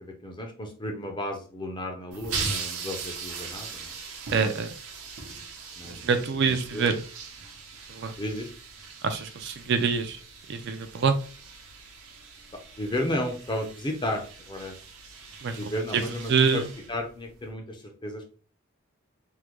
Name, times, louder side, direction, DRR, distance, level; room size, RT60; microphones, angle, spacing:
voice 1, 0.0-3.9 5.7-6.0 6.4-6.9 8.2-8.5 12.8-14.8 15.6-18.3, left 1 dB, 20° left, 3 dB, 0.5 m, -33 dB
sound 1, 2.1-17.5, right 5 dB, 85° right, 0.8 m, -40 dB
voice 2, 4.3-4.7 5.9-7.0 7.9-8.1 9.0-10.2 10.5-11.2 15.4-15.6 15.9-16.0 16.3-16.7, right 5 dB, 50° right, 8 dB, 0.4 m, -25 dB
3.6 x 2.1 x 3.0 m, 0.39 s
head